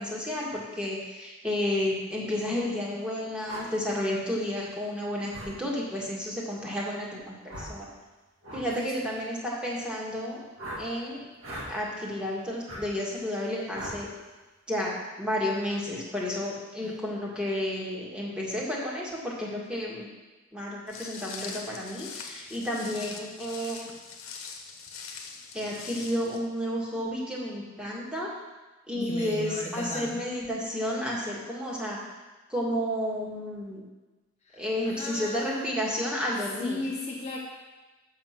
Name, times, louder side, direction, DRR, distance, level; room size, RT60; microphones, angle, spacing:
voice 1, 0.0-7.9 8.5-10.4 10.8-11.2 11.7-14.1 14.7-20.1 20.5-23.9 25.5-28.3 28.9-32.0 32.5-33.8 34.5-36.8, left 1 dB, 5° right, -5 dB, 1.9 m, -31 dB
sound 1, 3.4-3.7 5.3-5.5 7.5-7.8 8.4-8.7 10.6-10.8 11.4-11.7 12.7-12.8 13.7-14.0, right 1 dB, 65° right, 2.0 m, -38 dB
voice 2, 8.7-9.1 16.8-16.9 28.9-30.2 34.4-35.9 36.6-37.4, left 2 dB, 30° left, -2 dB, 0.8 m, -36 dB
Walk footsteps, 20.9-26.4, left 5 dB, 70° left, 1.2 m, -42 dB
7.4 x 6.9 x 5.9 m, 1.2 s
head